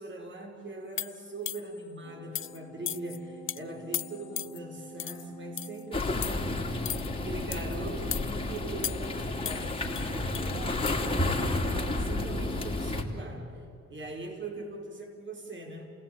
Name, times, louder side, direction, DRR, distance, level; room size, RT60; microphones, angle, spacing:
voice 1, 0.0-6.7 7.1-15.9, right 2 dB, 40° right, 3 dB, 5.4 m, -41 dB
sound 1, 1.0-1.8 2.3-2.6 2.9-3.2 3.5-3.6 3.9-4.6 5.0-5.2 5.6-5.8 6.2-6.4 6.8-7.1 7.5-7.8 8.1-8.3 8.8-9.2 9.4-10.5 10.9-11.0, left 10 dB, 45° left, 0.6 m, -36 dB
Organ, 2.0-13.3, right 1 dB, 20° right, 4.4 m, -50 dB
sound 2, 5.9-13.0, left 2 dB, 20° left, 3.2 m, -31 dB
30.0 x 18.5 x 9.1 m, 2.8 s
cardioid pair, 90°, 30 cm